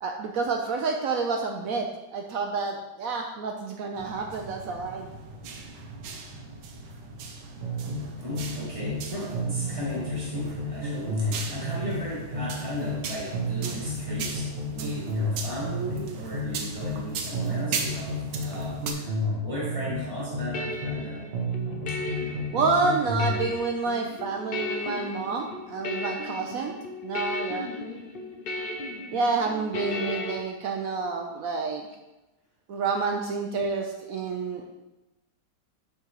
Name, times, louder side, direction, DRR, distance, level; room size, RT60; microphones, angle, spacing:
voice 1, 0.0-5.1 22.5-26.7 27.0-27.7 29.1-31.9 32.7-34.6, right 4 dB, 65° right, 3 dB, 0.9 m, -29 dB
sound 1, 3.9-18.9, right 4 dB, 85° right, 1.4 m, -38 dB
sound 2, 7.6-9.1 9.3-13.1 13.3-17.1 17.3-21.1 21.3-23.4, equal, 40° right, 1.2 m, -31 dB
voice 2, 8.2-21.3, equal, 20° left, -6 dB, 1.2 m, -36 dB
sound 3, 19.9-30.4, left 3 dB, 70° left, 0.5 m, -36 dB
7.2 x 3.7 x 4.7 m, 1.0 s
omnidirectional pair, 1.9 m